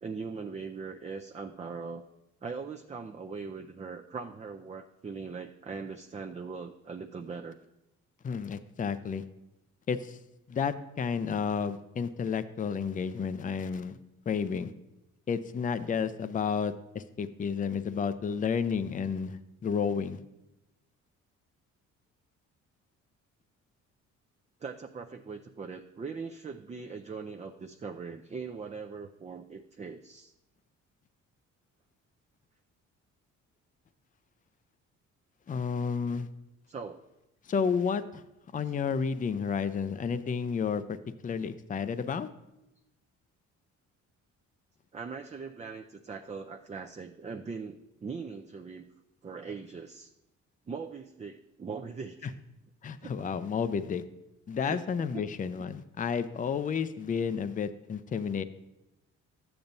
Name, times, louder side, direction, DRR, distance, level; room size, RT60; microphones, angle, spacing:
voice 1, 0.0-2.0 2.4-7.6 24.6-30.3 36.7-37.0 38.6-38.8 44.9-48.9 49.2-50.1 50.7-52.4 53.0-53.3 54.6-55.2, right 5 dB, 25° right, 4 dB, 0.5 m, -41 dB
voice 2, 8.2-9.2 9.9-10.2 10.5-14.0 14.3-14.7 15.3-20.2 35.5-36.3 37.5-38.2 38.5-40.8 41.2-42.3 52.8-54.0 54.5-58.4, left 6 dB, 25° left, 12 dB, 0.5 m, -31 dB
13.0 x 8.8 x 2.7 m, 0.93 s
cardioid pair, 90°, 30 cm